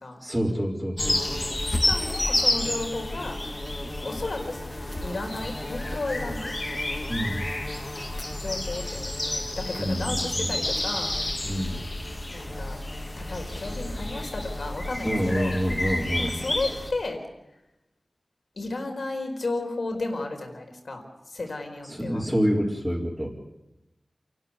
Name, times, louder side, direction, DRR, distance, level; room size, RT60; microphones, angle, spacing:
voice 1, 0.2-1.5 7.1-7.5 9.8-10.5 11.4-11.8 15.0-16.4 21.9-23.3, equal, 5° right, -7 dB, 4.3 m, -27 dB
sound 1, 1.0-16.9, left 1 dB, 35° left, 2.7 m, -30 dB
voice 2, 1.7-3.4 4.0-4.6 5.0-6.5 8.4-11.1 12.3-12.8 13.2-15.6 16.2-17.2 18.6-22.2, left 2 dB, 70° left, 4 dB, 4.6 m, -33 dB
28.5 x 12.5 x 9.8 m, 0.94 s
wide cardioid pair, 85°, 0 cm